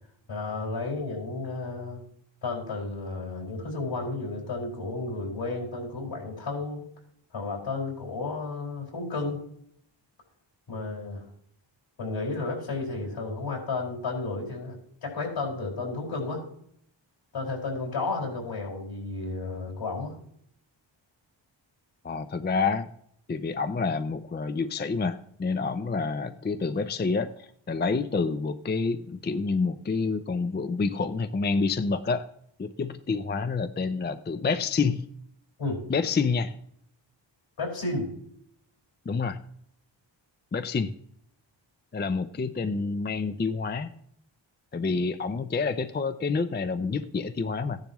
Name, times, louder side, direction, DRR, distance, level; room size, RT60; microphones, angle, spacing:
voice 1, 0.3-2.0 2.4-6.8 7.3-9.4 10.7-11.3 12.0-16.4 17.3-20.1 35.6-35.8 37.6-38.1, left 3 dB, 70° left, -2 dB, 5.2 m, -32 dB
voice 2, 22.0-22.9 23.3-32.2 32.6-35.1 35.9-36.5 39.1-39.4 40.5-40.9 41.9-43.9 44.7-47.8, left 4 dB, 25° left, 10 dB, 0.5 m, -28 dB
15.5 x 10.5 x 3.0 m, 0.68 s
wide cardioid pair, 140°, 46 cm